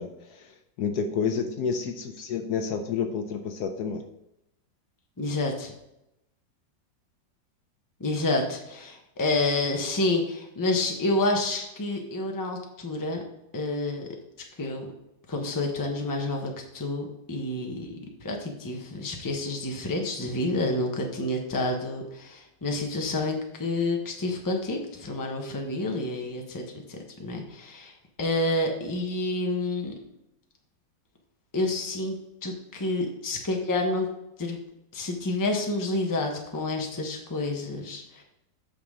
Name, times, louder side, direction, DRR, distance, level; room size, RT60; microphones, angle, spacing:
voice 1, 0.0-4.0, left 6 dB, 70° left, 6 dB, 1.1 m, -30 dB
voice 2, 5.2-5.7 8.0-13.2 13.5-14.1 14.6-14.9 15.3-26.6 26.9-29.9 31.5-34.1 34.4-34.6 34.9-38.2, left 2 dB, 15° left, 2 dB, 0.8 m, -29 dB
8.6 x 6.0 x 3.7 m, 0.86 s
omnidirectional pair, 2.0 m